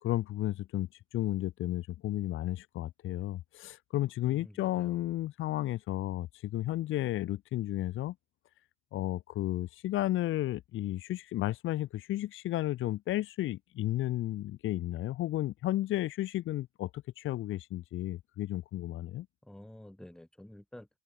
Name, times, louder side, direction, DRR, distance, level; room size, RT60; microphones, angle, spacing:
voice 1, 0.0-0.9 1.1-8.1 8.9-19.3, left 15 dB, 75° left, 2.7 m, -33 dB
voice 2, 4.2-5.0 19.4-20.9, left 1 dB, 5° left, 4.8 m, -50 dB
cardioid pair, 155°, 21 cm